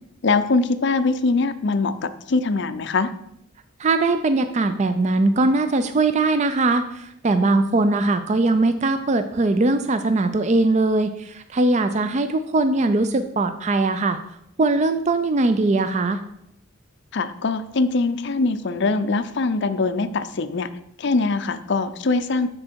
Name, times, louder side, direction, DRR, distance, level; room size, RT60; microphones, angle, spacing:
voice 1, 0.2-3.1 17.1-20.7 21.0-22.5, left 3 dB, 55° left, 10 dB, 0.5 m, -22 dB
voice 2, 3.8-14.2 14.6-16.2, right 2 dB, 35° right, 9 dB, 0.4 m, -20 dB
7.5 x 6.3 x 4.6 m, 0.78 s
head